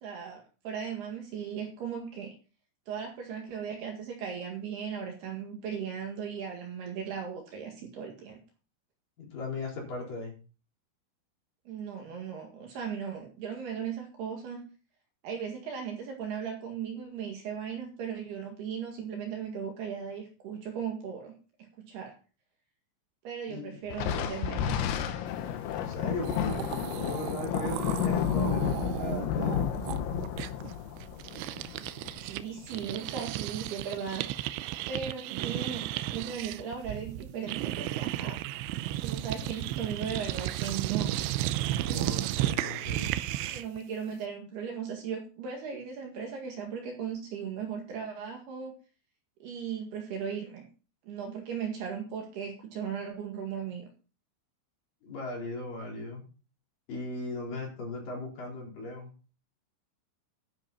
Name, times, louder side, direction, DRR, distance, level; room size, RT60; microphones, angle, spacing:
voice 1, 0.0-2.4 2.9-8.4 11.7-14.6 15.2-21.3 21.8-22.1 23.2-24.9 32.2-34.3 34.9-38.4 39.0-41.1 43.5-48.7 49.4-50.7 51.0-53.9, right 7 dB, 60° right, 2 dB, 3.6 m, -37 dB
voice 2, 9.2-10.4 23.5-23.8 25.7-30.1 39.4-39.5 41.8-43.2 55.0-56.2 56.9-59.1, left 2 dB, 45° left, -1 dB, 5.4 m, -38 dB
Thunder, 23.9-32.7, left 9 dB, 90° left, 3.9 m, -31 dB
sound 1, 25.9-26.0 26.2-32.4 32.7-43.8, right 14 dB, 80° right, 2.6 m, -34 dB
11.5 x 10.5 x 4.2 m, 0.35 s
omnidirectional pair, 5.8 m